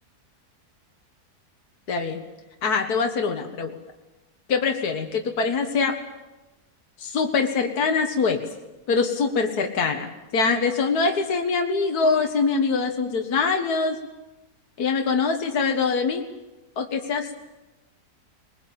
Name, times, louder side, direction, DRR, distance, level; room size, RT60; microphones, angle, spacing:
voice 1, 1.9-2.2 2.6-3.8 4.5-6.0 7.0-8.4 8.9-14.0 14.8-16.2 16.8-17.3, left 4 dB, 70° left, 4 dB, 2.1 m, -23 dB
22.0 x 20.5 x 8.7 m, 1.1 s
omnidirectional pair, 1.7 m